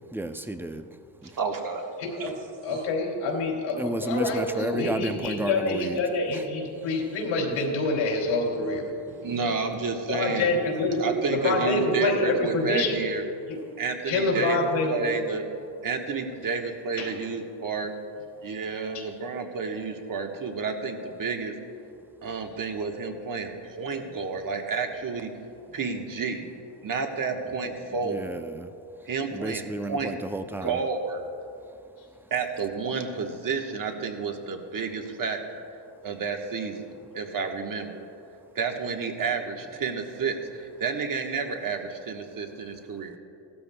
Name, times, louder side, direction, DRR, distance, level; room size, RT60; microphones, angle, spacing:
voice 1, 0.1-0.8 3.8-6.0 28.1-28.7 29.3-30.7, right 1 dB, 5° right, 9 dB, 0.3 m, -31 dB
voice 2, 1.3-1.9 2.2-2.3 2.7-2.8 9.2-10.5 11.0-13.2 13.8-14.6 14.9-15.4 15.8-17.9 18.4-21.5 22.2-25.3 25.7-26.4 26.8-28.3 29.0-30.1 30.6-31.2 32.3-35.6 36.0-38.0 38.5-43.2, right 5 dB, 45° right, 4 dB, 1.3 m, -30 dB
voice 3, 2.0-2.3 2.6-8.9 10.1-11.0 11.3-13.0 13.5-13.6 14.1-15.0 17.0-17.1 18.9-19.1, left 2 dB, 85° left, -1 dB, 2.8 m, -26 dB
16.0 x 13.0 x 2.2 m, 2.6 s
cardioid pair, 100°, 48 cm